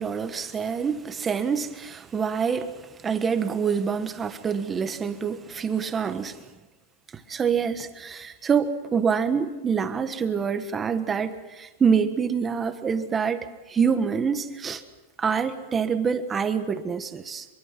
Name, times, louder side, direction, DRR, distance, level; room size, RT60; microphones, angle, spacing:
voice 1, 0.0-6.4 7.3-14.8 15.2-17.5, right 6 dB, 15° right, 9 dB, 1.4 m, -26 dB
24.5 x 23.0 x 6.0 m, 1.2 s
supercardioid pair, 150°, 0 cm